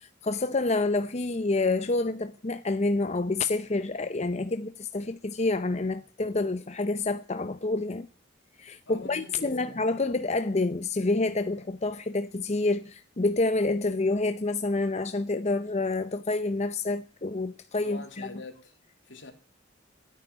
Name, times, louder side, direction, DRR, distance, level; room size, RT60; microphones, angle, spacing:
voice 1, 0.0-8.1 8.6-18.3, left 2 dB, 35° left, 0.7 m, -28 dB
voice 2, 8.9-9.9 17.8-18.7 19.0-19.3, left 2 dB, 70° left, 3.1 m, -44 dB
12.5 x 9.7 x 9.8 m
head